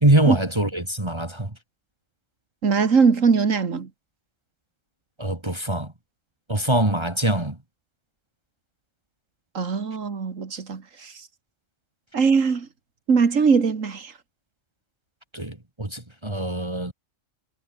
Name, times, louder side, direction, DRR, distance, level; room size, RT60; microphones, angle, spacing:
voice 1, 0.0-1.6 5.2-5.9 6.5-7.6 15.3-16.9, right 1 dB, 20° right, 2.3 m, -23 dB
voice 2, 2.6-3.9 9.5-11.1 12.1-12.7 13.1-14.1, right 5 dB, 90° right, 2.3 m, -21 dB
omnidirectional pair, 1.3 m